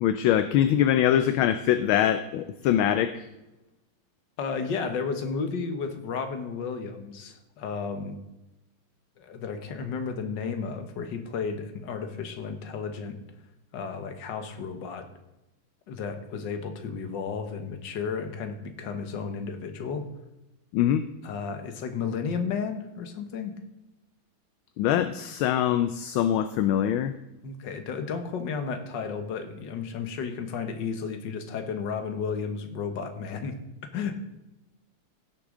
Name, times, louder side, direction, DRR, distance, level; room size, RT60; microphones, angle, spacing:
voice 1, 0.0-3.3 20.7-21.0 24.8-27.1, left 10 dB, 75° left, 10 dB, 1.4 m, -23 dB
voice 2, 4.4-8.2 9.2-13.2 13.7-15.1 15.9-20.1 21.2-23.5 27.4-34.1, left 5 dB, 60° left, 7 dB, 1.7 m, -33 dB
16.5 x 6.7 x 3.7 m, 0.97 s
omnidirectional pair, 2.3 m